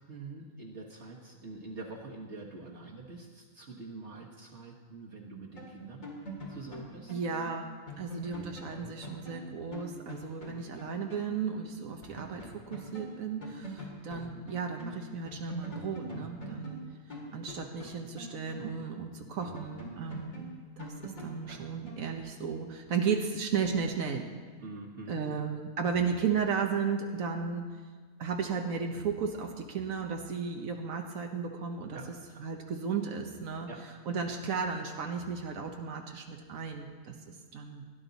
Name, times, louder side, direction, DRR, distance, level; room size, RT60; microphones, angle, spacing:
voice 1, 0.0-6.0 6.5-7.1 24.6-25.4 31.9-32.4 33.7-33.8, right 3 dB, 55° right, -3 dB, 1.6 m, -45 dB
sound 1, 5.5-11.3 11.6-11.7 12.0-15.0 15.2-19.0 19.4-22.2, equal, 75° left, 2.9 m, -44 dB
voice 2, 7.1-16.8 17.3-20.5 20.8-24.3 25.1-27.7 28.2-37.8, right 6 dB, 85° right, 3 dB, 1.4 m, -34 dB
16.5 x 10.5 x 4.0 m, 1.5 s
omnidirectional pair, 1.4 m